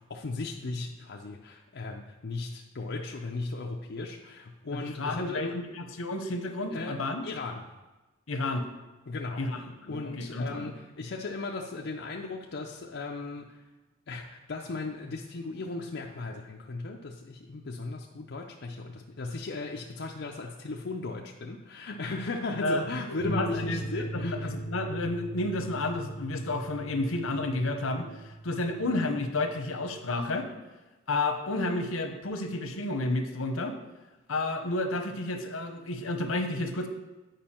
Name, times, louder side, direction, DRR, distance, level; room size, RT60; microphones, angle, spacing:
voice 1, 0.0-5.6 6.7-7.0 7.2-7.6 9.1-13.6 14.1-24.5, left 3 dB, 55° left, 0 dB, 0.5 m, -36 dB
voice 2, 4.7-7.3 8.3-8.7 9.4-10.7 22.6-22.8 23.2-30.5 31.1-33.8 34.3-36.9, left 2 dB, 85° left, 6 dB, 0.9 m, -31 dB
sound 1, 23.2-30.3, right 1 dB, 25° right, 1.8 m, -40 dB
9.1 x 5.2 x 4.3 m, 1.1 s
head